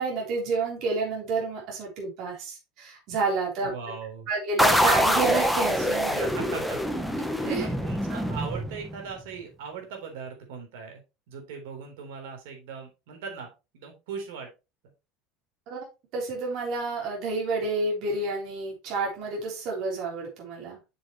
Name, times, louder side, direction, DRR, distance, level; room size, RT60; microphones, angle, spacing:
voice 1, 0.0-3.7 4.3-6.3 7.5-7.7 15.7-15.9 16.1-20.8, right 3 dB, 45° right, -2 dB, 3.7 m, -29 dB
voice 2, 3.6-4.3 6.0-6.8 7.4-11.0 11.3-14.5, right 5 dB, 80° right, 3 dB, 3.8 m, -39 dB
sound 1, 4.6-9.1, equal, ahead, 0.9 m, -25 dB
7.7 x 7.0 x 3.1 m, 0.27 s
cardioid pair, 160°, 0 cm